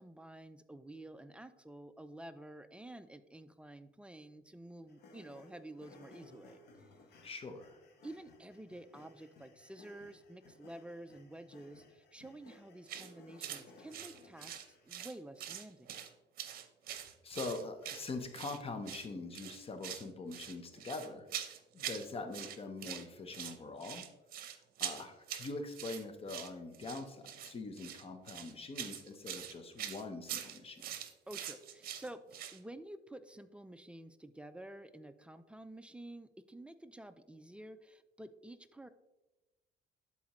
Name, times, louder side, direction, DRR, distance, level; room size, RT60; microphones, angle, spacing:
voice 1, 0.0-6.9 8.0-15.9 31.3-38.9, right 1 dB, 5° right, 11 dB, 0.4 m, -50 dB
sound 1, 4.9-15.1, left 2 dB, 75° left, 1.2 m, -60 dB
voice 2, 7.2-7.8 16.9-24.1 24.4-31.0, left 3 dB, 35° left, 7 dB, 0.8 m, -44 dB
sound 2, 12.9-13.1 13.4-13.6 13.9-15.1 15.4-16.1 16.4-18.6 18.8-19.1 19.3-20.1 20.3-22.1 22.3-23.0 23.3-32.6, right 10 dB, 60° right, 0.7 m, -44 dB
11.0 x 4.2 x 3.0 m, 1.1 s
cardioid pair, 110°, 17 cm